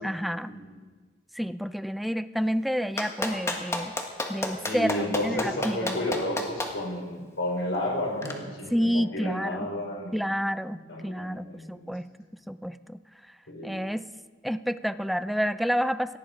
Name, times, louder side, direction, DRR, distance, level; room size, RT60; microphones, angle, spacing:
voice 1, 0.0-0.5 1.4-3.9 4.3-5.0 5.2-6.0 8.7-9.7 10.1-10.8 11.0-12.0 12.5-13.0 13.6-14.1 14.4-16.2, equal, ahead, 12 dB, 0.4 m, -29 dB
Clapping, 3.0-6.7 8.2-8.3, left 2 dB, 15° left, 1.5 m, -29 dB
voice 2, 4.6-10.4 10.7-11.9 13.5-13.7, left 1 dB, 90° left, -1 dB, 4.2 m, -32 dB
18.0 x 13.0 x 5.1 m, 1.4 s
head